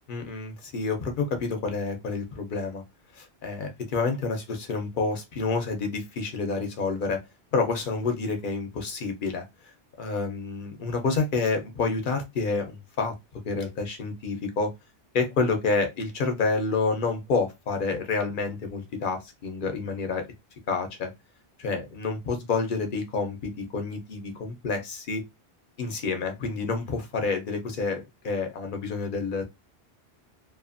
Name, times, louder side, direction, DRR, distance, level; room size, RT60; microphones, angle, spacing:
voice 1, 0.1-2.8 3.1-7.2 7.5-9.4 10.0-13.1 13.4-14.7 15.1-20.2 20.7-21.1 21.6-25.2 25.8-29.4, left 4 dB, 55° left, 0.9 m, -28 dB
2.6 x 2.5 x 2.5 m
omnidirectional pair, 1.1 m